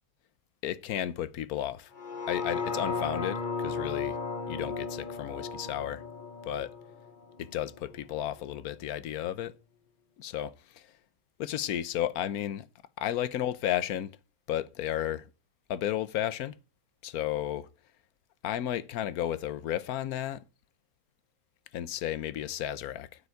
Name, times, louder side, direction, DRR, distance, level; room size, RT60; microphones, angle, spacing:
voice 1, 0.6-1.9 2.3-4.2 4.5-6.0 6.4-6.7 7.4-9.5 10.2-10.9 11.4-12.7 13.0-14.1 14.5-15.3 15.7-16.5 17.0-17.7 18.4-20.4 21.7-23.1, left 11 dB, 70° left, 1.2 m, -33 dB
sound 1, 1.9-8.1 8.5-8.6, left 4 dB, 30° left, 1.2 m, -35 dB
9.5 x 8.2 x 4.7 m
omnidirectional pair, 1.8 m